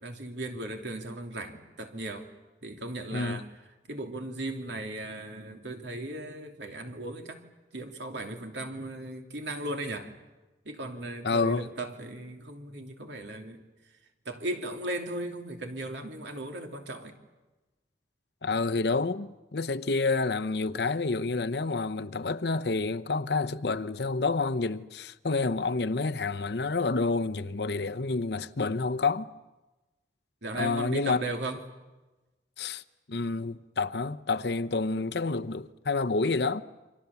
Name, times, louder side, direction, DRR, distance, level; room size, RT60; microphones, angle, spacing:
voice 1, 0.0-2.3 2.6-3.5 3.9-7.4 7.7-10.2 10.6-13.6 14.2-17.1 30.4-31.6, right 1 dB, 80° right, 2.9 m, -37 dB
voice 2, 3.1-3.4 11.2-11.7 18.4-29.3 30.5-31.2 32.6-32.8 33.1-36.6, left 3 dB, 65° left, 0.8 m, -29 dB
29.0 x 25.5 x 7.0 m
head